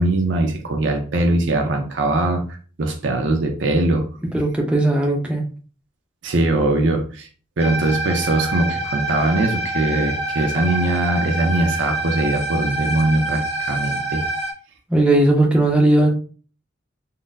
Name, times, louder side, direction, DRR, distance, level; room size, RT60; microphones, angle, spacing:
voice 1, 0.0-4.1 6.2-7.3 7.6-14.3, right 2 dB, 65° right, 3 dB, 0.5 m, -21 dB
voice 2, 4.3-5.4 14.9-16.1, right 2 dB, 5° right, 0 dB, 0.6 m, -17 dB
sound 1, 7.6-14.5, right 2 dB, 30° left, 1.0 m, -26 dB
3.9 x 2.1 x 2.5 m, 0.40 s
head